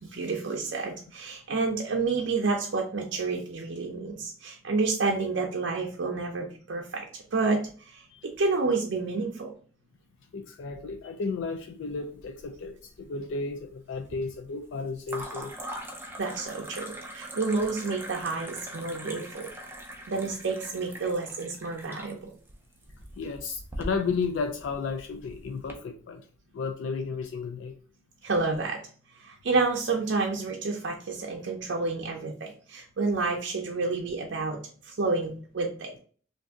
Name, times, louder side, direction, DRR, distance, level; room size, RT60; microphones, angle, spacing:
voice 1, 0.0-8.1 8.4-9.5 16.2-19.5 20.1-22.3 28.2-28.8 29.1-36.0, right 3 dB, 70° right, 0.5 m, -29 dB
voice 2, 10.3-15.5 23.2-26.2 26.5-27.7, left 4 dB, 80° left, 0.3 m, -33 dB
Pouring water, 11.9-12.7 13.0-13.6 15.0-25.7, right 1 dB, 10° right, 0.5 m, -42 dB
2.5 x 2.5 x 3.4 m
head